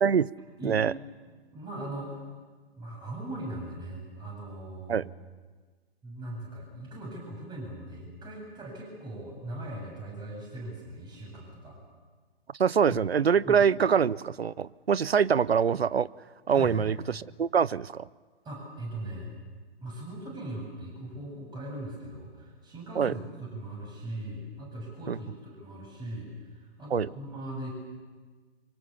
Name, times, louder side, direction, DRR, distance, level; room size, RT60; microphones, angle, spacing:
voice 1, 0.0-0.3 0.6-0.9 4.9-5.1 12.6-16.1 16.5-18.0 23.0-23.1 25.1-25.2 26.9-27.1, right 7 dB, 75° right, 21 dB, 0.7 m, -24 dB
voice 2, 1.5-2.3 2.7-5.1 6.0-11.8 13.4-13.6 16.5-16.9 18.4-19.3 19.8-27.7, right 1 dB, 15° right, -1 dB, 7.9 m, -39 dB
26.5 x 24.5 x 7.1 m, 1.4 s
figure-of-eight pair, 125°, 31 cm